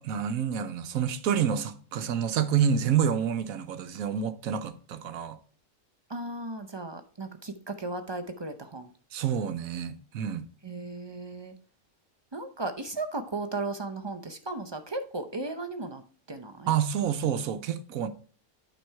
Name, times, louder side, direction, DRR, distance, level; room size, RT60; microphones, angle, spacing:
voice 1, 0.0-5.4 9.1-10.5 16.7-18.1, right 8 dB, 75° right, 1.2 m, -28 dB
voice 2, 6.1-8.9 10.6-11.5 12.3-16.0 16.3-16.7, right 2 dB, 35° right, 0.4 m, -36 dB
9.2 x 5.3 x 4.6 m
omnidirectional pair, 1.5 m